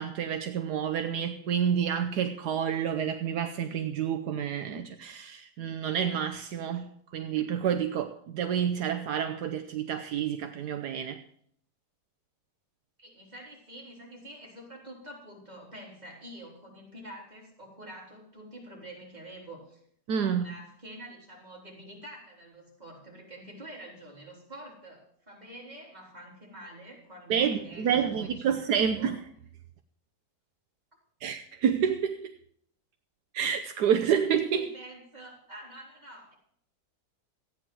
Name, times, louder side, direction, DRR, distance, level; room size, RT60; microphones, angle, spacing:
voice 1, 0.0-11.2 20.1-20.5 27.3-29.2 31.2-32.3 33.3-34.7, right 8 dB, 75° right, 1.3 m, -29 dB
voice 2, 13.0-19.8 20.2-29.2 34.6-36.3, right 1 dB, 25° right, 3.8 m, -47 dB
14.5 x 9.2 x 6.2 m
omnidirectional pair, 1.8 m